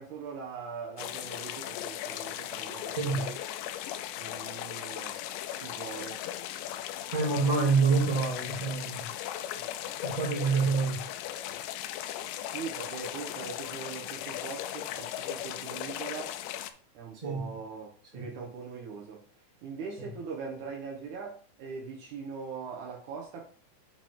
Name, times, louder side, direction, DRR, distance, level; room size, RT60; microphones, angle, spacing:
voice 1, 0.0-3.3 4.2-5.2 5.5-6.2 9.6-9.7 12.4-16.4 16.9-19.2 19.6-23.4, right 5 dB, 85° right, -1 dB, 1.7 m, -41 dB
sound 1, 1.0-16.7, left 12 dB, 85° left, 2.8 m, -37 dB
voice 2, 2.9-3.3 7.1-9.1 10.0-11.1 17.1-17.5 18.1-18.2 20.0-20.1, right 4 dB, 20° right, -5 dB, 1.4 m, -27 dB
7.4 x 5.2 x 3.6 m, 0.43 s
omnidirectional pair, 5.2 m